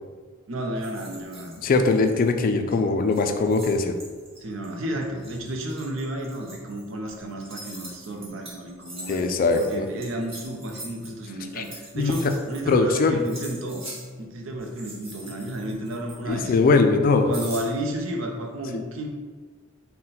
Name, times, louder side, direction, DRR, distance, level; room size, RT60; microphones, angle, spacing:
voice 1, 0.5-1.5 4.4-9.3 9.5-13.9 14.2-16.5 17.3-19.1, right 1 dB, 75° right, 2 dB, 0.6 m, -32 dB
sound 1, 0.8-2.4 2.7-2.8 3.1-12.9 13.2-14.1 14.6-16.5 17.3-18.1, right 1 dB, 30° right, 1.1 m, -43 dB
voice 2, 1.6-4.0 9.1-9.9 11.5-11.6 12.0-12.3 12.7-13.2 16.3-17.3, left 3 dB, 45° left, 6 dB, 0.3 m, -21 dB
4.0 x 2.1 x 3.9 m, 1.5 s
head